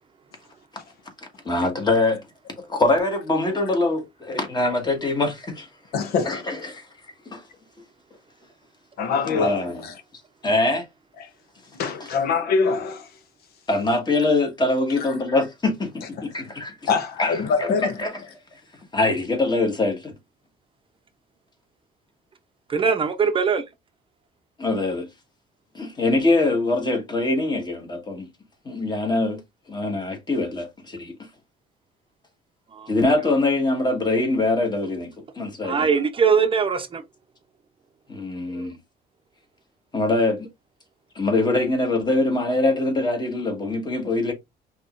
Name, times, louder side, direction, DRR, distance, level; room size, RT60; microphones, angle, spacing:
voice 1, 1.4-2.2 2.7-5.7 6.2-6.9 7.3-7.4 9.3-9.9 10.4-10.8 12.0-12.1 13.7-16.9 17.2-18.2 18.9-20.1 24.6-25.1 25.7-28.3 28.6-29.4 29.7-31.1 32.9-35.9 38.1-38.8 39.9-40.5 41.1-44.3, left 2 dB, 25° left, 1.6 m, -23 dB
voice 2, 5.9-6.4 9.0-9.9 11.8-13.0 16.9-17.9, left 5 dB, 70° left, 0.8 m, -23 dB
voice 3, 22.7-23.6 32.7-32.9 35.6-37.0 38.5-38.7, right 6 dB, 30° right, 0.7 m, -21 dB
5.3 x 3.0 x 2.5 m
cardioid pair, 110°, 17 cm